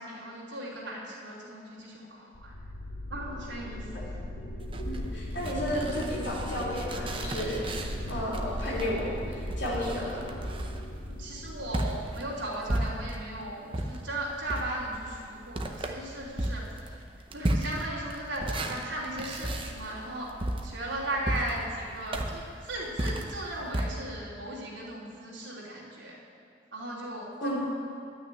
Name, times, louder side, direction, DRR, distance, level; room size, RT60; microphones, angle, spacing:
voice 1, 0.0-2.5 3.1-4.1 11.2-17.0 17.3-20.3 20.6-26.2 26.7-27.6, right 1 dB, 80° right, -6 dB, 3.1 m, -37 dB
sound 1, 2.3-13.0, left 1 dB, 85° left, 1.6 m, -38 dB
sound 2, 4.6-13.3 13.7-23.9, right 1 dB, 30° right, 0.8 m, -34 dB
voice 2, 4.8-7.8 8.1-10.3 27.4-27.6, equal, 70° left, -5 dB, 3.6 m, -33 dB
11.5 x 6.3 x 9.0 m, 2.3 s
head